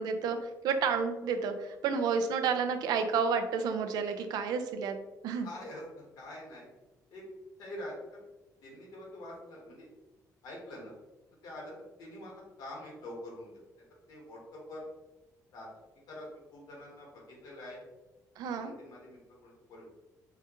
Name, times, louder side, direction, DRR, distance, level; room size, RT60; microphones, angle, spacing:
voice 1, 0.0-5.0 5.2-5.5 18.4-18.7, right 5 dB, 85° right, 8 dB, 0.4 m, -30 dB
voice 2, 5.4-6.7 7.1-7.2 7.6-7.9 8.6-9.9 10.4-10.9 11.4-11.7 12.0-13.5 14.1-14.8 15.5-15.7 16.1-17.8 18.6-19.9, left 1 dB, 85° left, -3 dB, 1.4 m, -45 dB
4.6 x 2.3 x 2.9 m, 1.1 s
cardioid pair, 145°, 7 cm